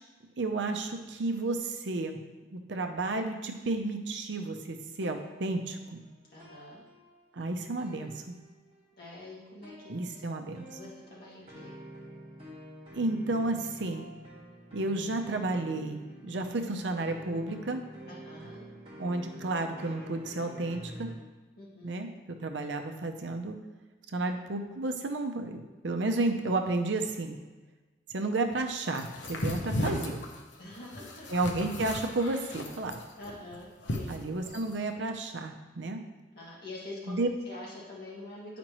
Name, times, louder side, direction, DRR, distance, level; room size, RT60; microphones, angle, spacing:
voice 1, 0.4-2.2 2.5-6.0 7.4-8.3 9.9-10.6 13.0-14.0 14.7-17.8 19.0-21.1 21.8-22.1 22.4-23.6 24.1-27.4 28.1-30.2 31.3-33.0 34.1-36.0 37.1-37.3, right 2 dB, 80° right, 5 dB, 0.7 m, -32 dB
sound 1, 4.9-7.5 7.8-8.8 9.6-21.1, right 1 dB, 30° right, 1.7 m, -48 dB
voice 2, 6.3-6.8 9.0-10.2 10.7-11.7 18.1-18.6 21.6-21.9 30.6-31.3 33.2-34.2 36.3-37.2 37.4-38.6, left 2 dB, 55° left, -6 dB, 2.1 m, -45 dB
sound 2, 28.9-34.7, left 1 dB, 80° left, 0.8 m, -36 dB
8.8 x 5.1 x 3.0 m, 1.2 s
head